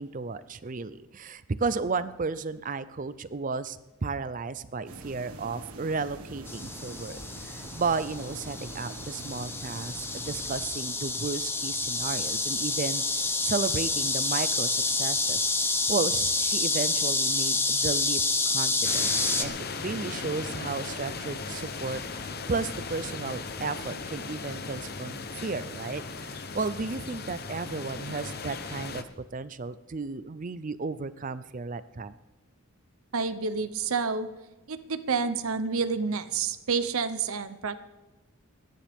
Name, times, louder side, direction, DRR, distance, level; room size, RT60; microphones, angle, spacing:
voice 1, 0.0-13.0 13.4-15.5 15.9-18.2 18.5-29.0 29.3-32.1, right 4 dB, 35° right, 14 dB, 0.5 m, -33 dB
sound 1, 4.9-10.7, right 2 dB, 90° right, 1.7 m, -44 dB
sound 2, 6.5-19.4, left 3 dB, 10° left, 0.7 m, -28 dB
sound 3, 18.8-29.0, left 4 dB, 45° left, 0.9 m, -37 dB
voice 2, 33.1-34.3 34.7-37.8, right 5 dB, 75° right, 11 dB, 0.8 m, -29 dB
29.5 x 10.0 x 3.6 m, 1.1 s
head